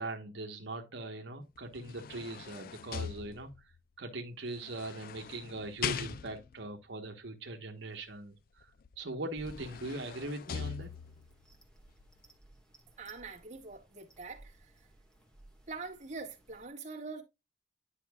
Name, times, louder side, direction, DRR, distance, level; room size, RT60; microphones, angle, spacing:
voice 1, 0.0-3.7 4.0-10.9, right 2 dB, 80° right, 1.2 m, -41 dB
sound 1, 1.6-3.8 4.6-6.6 8.9-9.0 9.3-11.3 11.9-12.0, left 7 dB, 55° left, 0.4 m, -41 dB
sound 2, 9.4-16.7, right 1 dB, 5° left, 1.7 m, -59 dB
voice 2, 13.0-14.6 15.7-17.2, right 4 dB, 40° right, 1.8 m, -44 dB
10.0 x 5.8 x 2.3 m
head